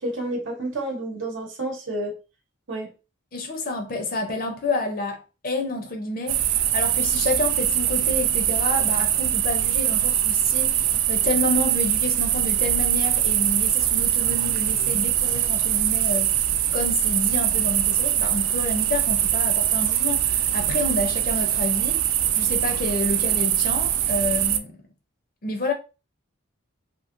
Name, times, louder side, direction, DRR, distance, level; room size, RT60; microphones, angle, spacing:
voice 1, 0.0-2.2 2.7-2.9, right 1 dB, 65° right, 0.9 m, -30 dB
voice 2, 3.3-6.4 6.7-16.3 16.7-22.0 22.4-24.7 25.4-25.7, left 2 dB, 45° left, 0.6 m, -29 dB
sound 1, 6.3-24.6, right 11 dB, 85° right, 0.3 m, -22 dB
2.9 x 2.7 x 2.5 m
head